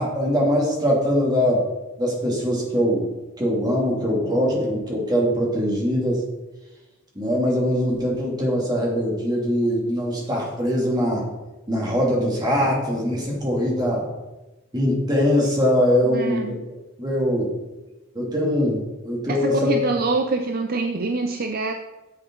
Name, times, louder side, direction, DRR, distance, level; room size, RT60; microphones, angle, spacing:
voice 1, 0.0-1.6 2.0-3.0 3.4-6.2 7.1-11.2 11.7-14.1 14.7-16.6 17.0-17.5 18.1-19.8, equal, 20° right, -3 dB, 2.6 m, -22 dB
voice 2, 16.0-16.6 19.3-21.7, right 3 dB, 45° right, 6 dB, 0.6 m, -25 dB
9.9 x 7.8 x 3.8 m, 1.1 s
head